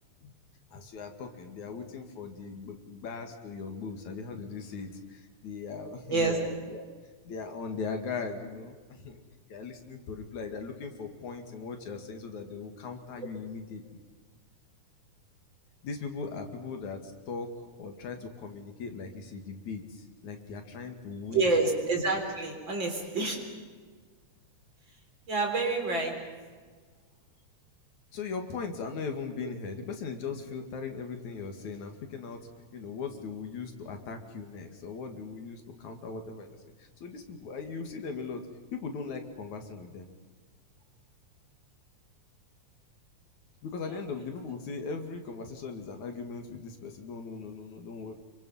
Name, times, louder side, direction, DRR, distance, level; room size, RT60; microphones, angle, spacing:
voice 1, 0.7-6.8 7.2-9.2 9.5-14.0 15.8-21.5 28.1-40.1 43.6-48.1, left 4 dB, 70° left, 4 dB, 3.4 m, -39 dB
voice 2, 21.3-23.4 25.3-26.2, right 3 dB, 40° right, 2 dB, 4.4 m, -27 dB
28.0 x 24.0 x 5.6 m, 1.5 s
omnidirectional pair, 3.5 m